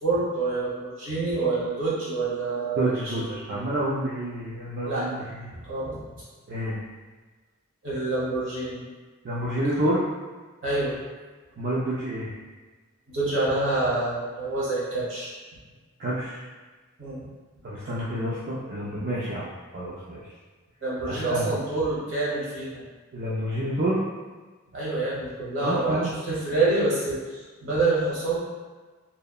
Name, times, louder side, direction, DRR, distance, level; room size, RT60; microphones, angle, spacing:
voice 1, 0.0-3.6 4.8-5.1 5.6-6.0 7.8-8.8 10.6-11.0 13.1-15.3 17.0-17.3 20.8-22.8 24.7-28.4, right 3 dB, 65° right, -8 dB, 1.0 m, -27 dB
voice 2, 2.7-5.5 6.5-6.7 9.2-10.1 11.6-12.3 16.0-16.4 17.6-20.2 21.1-21.5 23.1-24.0 25.6-26.1, right 1 dB, 45° right, -8 dB, 0.4 m, -28 dB
2.7 x 2.1 x 2.2 m, 1.3 s
head